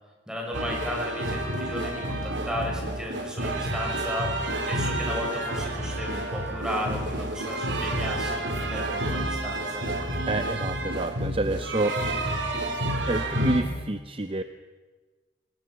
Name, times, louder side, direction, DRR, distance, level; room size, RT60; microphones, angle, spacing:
voice 1, 0.3-4.4 4.7-9.9, left 1 dB, 5° right, -1 dB, 6.0 m, -34 dB
sound 1, 0.5-13.6, right 1 dB, 80° right, 3.8 m, -29 dB
voice 2, 10.3-11.9 13.1-14.4, right 2 dB, 30° right, 9 dB, 0.8 m, -28 dB
25.0 x 20.0 x 6.0 m, 1.3 s
head